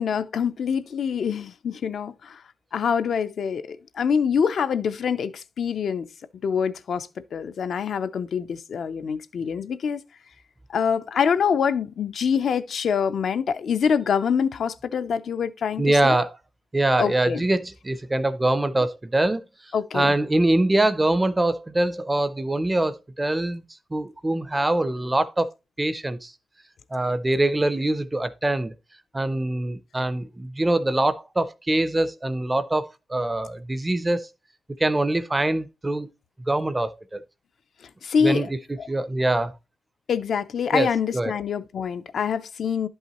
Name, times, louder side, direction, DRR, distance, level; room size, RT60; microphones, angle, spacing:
voice 1, 0.0-2.4 2.7-6.1 6.4-10.0 10.7-16.2 17.0-17.4 19.7-20.1 38.0-38.5 38.8-38.9 40.1-42.9, left 7 dB, 70° left, 0.5 m, -25 dB
voice 2, 15.8-16.4 16.7-19.4 19.9-23.6 23.9-25.5 25.8-26.3 26.9-28.7 29.1-34.3 34.8-36.1 36.5-37.2 38.2-38.5 38.9-39.5 40.7-40.9 41.1-41.3, right 1 dB, 15° right, 0.4 m, -23 dB
11.0 x 5.5 x 2.9 m
wide cardioid pair, 180°, 0 cm